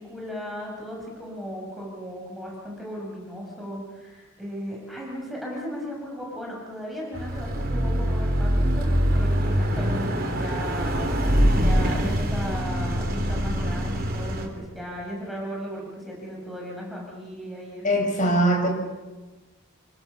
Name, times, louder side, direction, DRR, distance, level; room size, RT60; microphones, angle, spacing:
voice 1, 0.0-17.9, equal, ahead, -3 dB, 7.0 m, -36 dB
Car passing by / Accelerating revving vroom, 7.1-14.5, equal, 45° right, 4.1 m, -24 dB
voice 2, 17.8-18.7, right 1 dB, 40° left, 3 dB, 5.7 m, -21 dB
28.0 x 25.0 x 7.1 m, 1.2 s
head